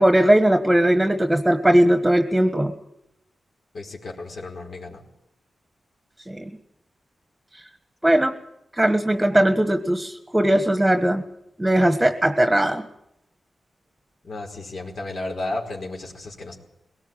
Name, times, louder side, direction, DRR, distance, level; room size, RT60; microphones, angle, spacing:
voice 1, 0.0-2.7 6.3-6.4 8.0-8.3 8.8-11.2 11.6-12.9, right 1 dB, 10° right, 7 dB, 1.4 m, -19 dB
voice 2, 3.7-5.0 14.2-16.6, left 2 dB, 65° left, 0 dB, 4.7 m, -33 dB
22.0 x 18.0 x 9.2 m, 0.84 s
wide cardioid pair, 95°, 0 cm